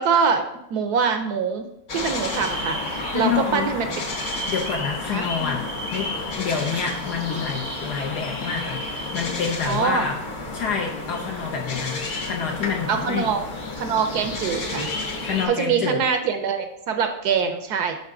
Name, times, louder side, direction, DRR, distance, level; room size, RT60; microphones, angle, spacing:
voice 1, 0.0-3.9 5.1-5.3 9.7-10.1 12.9-13.4 13.8-14.9 15.5-18.0, right 6 dB, 70° right, 7 dB, 1.1 m, -24 dB
sound 1, 1.9-15.5, left 3 dB, 45° left, 1.4 m, -31 dB
sound 2, 2.0-3.5 3.9-9.9, right 3 dB, 40° right, 0.6 m, -38 dB
voice 2, 3.1-3.7 4.5-10.2 10.5-13.3 15.2-16.0, left 6 dB, 70° left, 1 dB, 1.3 m, -28 dB
8.0 x 5.3 x 3.8 m, 0.81 s
omnidirectional pair, 1.9 m